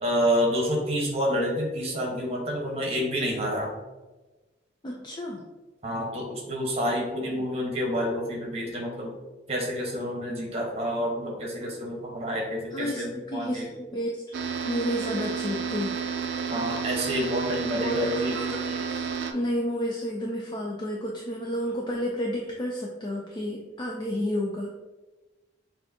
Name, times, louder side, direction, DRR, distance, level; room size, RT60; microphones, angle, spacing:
voice 1, 0.0-3.7 5.8-9.1 9.5-13.7 16.5-18.4, equal, 35° right, -1 dB, 1.1 m, -28 dB
voice 2, 4.8-5.5 7.2-7.5 12.7-14.2 14.6-16.0 17.7-24.7, equal, 25° left, -1 dB, 0.4 m, -31 dB
sound 1, 14.3-19.3, right 6 dB, 70° right, 0.4 m, -31 dB
6.3 x 2.7 x 2.7 m, 1.2 s
head